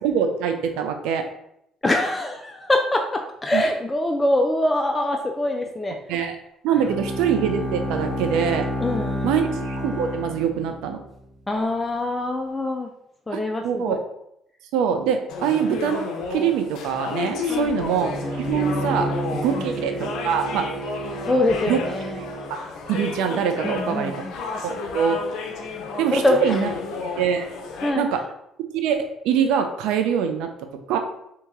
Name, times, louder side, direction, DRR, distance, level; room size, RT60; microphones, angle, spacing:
voice 1, 0.0-1.2 3.5-3.6 6.1-6.4 6.6-8.7 9.2-11.0 13.3-14.0 14.7-18.1 18.5-20.7 21.7-21.8 22.9-24.1 24.6-25.2 26.0-26.7 27.2-27.5 27.9-28.2 28.7-30.5 30.9-31.0, right 7 dB, 80° right, 6 dB, 0.4 m, -24 dB
voice 2, 1.8-6.0 8.8-9.3 11.5-12.9 13.3-14.0 17.5-17.7 19.5-19.6 21.2-22.2 23.6-24.3 26.1-26.6 27.8-28.0, left 1 dB, 20° left, 3 dB, 0.4 m, -24 dB
Bowed string instrument, 6.7-11.1, left 1 dB, 40° right, 1.3 m, -29 dB
sound 1, 15.3-27.9, left 4 dB, 75° left, 0.6 m, -32 dB
Bowed string instrument 2, 18.0-22.5, right 2 dB, 15° right, 1.4 m, -31 dB
2.8 x 2.7 x 3.6 m, 0.78 s
supercardioid pair, 65°, 0 cm